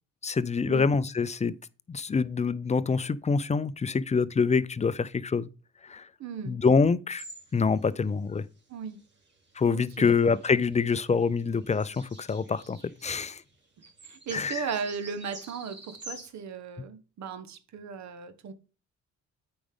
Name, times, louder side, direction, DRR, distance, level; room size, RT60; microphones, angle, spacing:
voice 1, 0.2-1.5 1.9-5.5 5.8-6.1 6.5-7.2 7.5-8.4 9.6-13.4 14.3-14.7, left 5 dB, 25° left, 0.5 m, -26 dB
voice 2, 6.2-6.6 8.7-9.0 9.7-10.1 14.0-18.5, right 6 dB, 65° right, 1.2 m, -36 dB
sound 1, 7.2-7.6 8.0-8.1 8.8-13.2 13.5-13.6 13.8-16.3, right 1 dB, 35° right, 2.9 m, -48 dB
8.6 x 5.1 x 3.6 m
cardioid pair, 90°, 30 cm